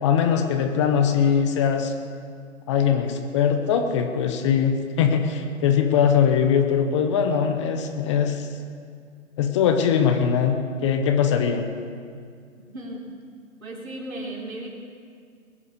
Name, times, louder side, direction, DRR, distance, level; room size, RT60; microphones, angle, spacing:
voice 1, 0.0-1.9 2.7-8.5 9.4-11.6, left 7 dB, 20° left, 5 dB, 0.9 m, -21 dB
voice 2, 12.7-13.1 13.6-14.7, right 1 dB, 80° right, -1 dB, 4.1 m, -35 dB
21.0 x 7.4 x 8.3 m, 2.3 s
hypercardioid pair, 145°, 40 cm